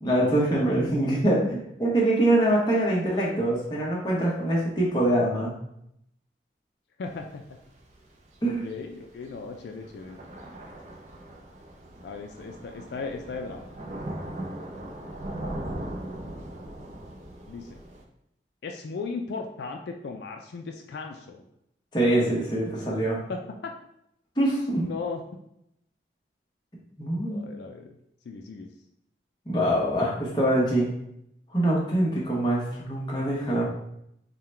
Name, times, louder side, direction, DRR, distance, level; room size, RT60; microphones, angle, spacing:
voice 1, 0.0-5.5 8.4-8.6 21.9-23.2 24.4-24.9 27.0-27.5 29.5-30.9 31.5-33.6, right 1 dB, 25° left, -4 dB, 0.9 m, -24 dB
voice 2, 7.0-7.6 8.4-10.2 12.0-13.7 17.5-17.8 18.6-21.4 23.3-23.7 24.8-25.2 27.3-28.0 28.3-28.7, left 4 dB, 75° left, 3 dB, 0.3 m, -36 dB
Thunder / Rain, 7.1-18.0, right 1 dB, 40° right, 0.5 m, -40 dB
3.7 x 2.2 x 4.3 m, 0.77 s
head